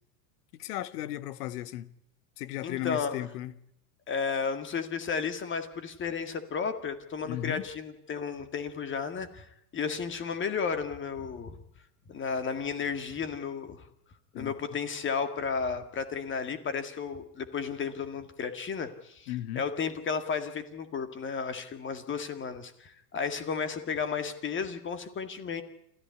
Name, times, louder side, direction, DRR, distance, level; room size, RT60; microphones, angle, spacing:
voice 1, 0.6-1.9 2.4-3.5 7.2-7.6 14.3-14.5 19.3-19.6, left 14 dB, 65° left, 1.4 m, -35 dB
voice 2, 2.6-3.3 4.1-9.5 9.7-11.6 12.1-13.9 14.4-25.6, left 6 dB, 25° left, 2.1 m, -33 dB
27.5 x 14.0 x 9.6 m
supercardioid pair, 130°, 49 cm